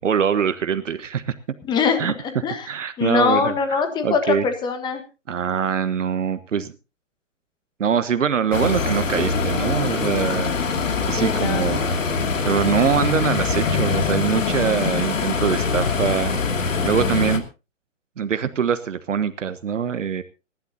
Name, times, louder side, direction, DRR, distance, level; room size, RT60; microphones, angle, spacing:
voice 1, 0.0-1.3 2.0-2.1 2.7-4.5 5.3-6.7 7.8-10.5 11.1-11.8 12.4-16.3 16.8-17.5 18.2-20.2, right 7 dB, 75° right, 11 dB, 1.3 m, -23 dB
voice 2, 1.7-2.7 3.0-5.0 11.2-11.7, left 5 dB, 10° left, 8 dB, 1.5 m, -23 dB
sound 1, 8.5-17.4, left 4 dB, 85° left, 2.6 m, -23 dB
27.0 x 11.5 x 2.8 m, 0.30 s
hypercardioid pair, 150°, 38 cm